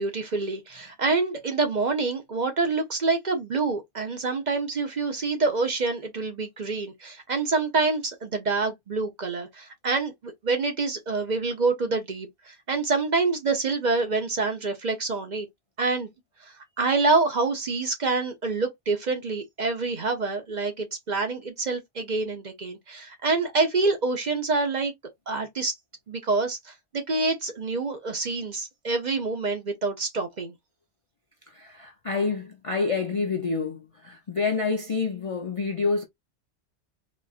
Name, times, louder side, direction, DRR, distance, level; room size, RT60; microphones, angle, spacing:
voice 1, 0.0-15.5 15.8-16.1 16.4-24.9 25.3-25.7 26.1-30.5, right 3 dB, 45° right, 0.8 m, -27 dB
voice 2, 31.5-36.0, left 4 dB, 45° left, 0.4 m, -28 dB
4.2 x 2.4 x 2.4 m
omnidirectional pair, 1.2 m